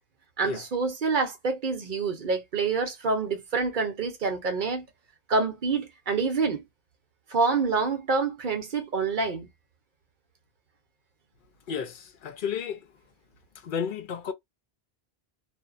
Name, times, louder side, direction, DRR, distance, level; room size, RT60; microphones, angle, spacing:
voice 1, 0.4-4.9 5.3-6.6 7.3-9.5, right 4 dB, 55° right, 0.8 m, -27 dB
voice 2, 11.7-12.9 13.6-14.3, left 7 dB, 60° left, 0.6 m, -32 dB
2.6 x 2.0 x 2.4 m
omnidirectional pair, 1.1 m